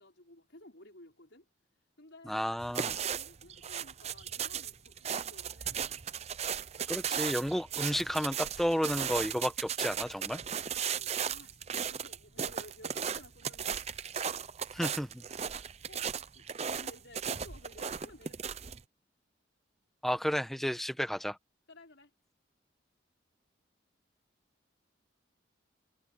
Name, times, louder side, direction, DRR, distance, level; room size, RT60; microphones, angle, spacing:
voice 1, 0.0-1.5 2.0-2.5 2.9-6.0 10.7-14.5 15.4-16.1 16.3-18.6 21.7-22.1, left 1 dB, 65° left, 5.8 m, -56 dB
voice 2, 2.3-3.0 6.9-10.4 14.7-15.2 20.0-21.4, equal, ahead, 1.2 m, -32 dB
sound 1, 2.6-18.8, right 7 dB, 35° right, 0.6 m, -36 dB
head